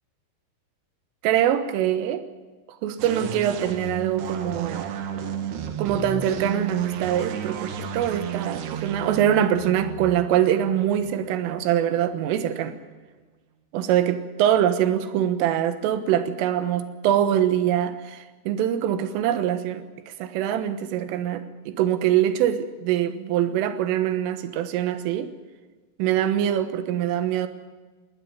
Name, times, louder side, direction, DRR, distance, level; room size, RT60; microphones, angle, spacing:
voice 1, 1.2-2.2 2.7-4.9 5.8-12.8 13.7-19.9 20.2-25.3 26.0-27.5, right 10 dB, 85° right, 10 dB, 3.8 m, -23 dB
sound 1, 3.0-12.4, right 8 dB, 65° right, 3.3 m, -33 dB
19.5 x 19.5 x 9.4 m, 1.3 s
omnidirectional pair, 5.7 m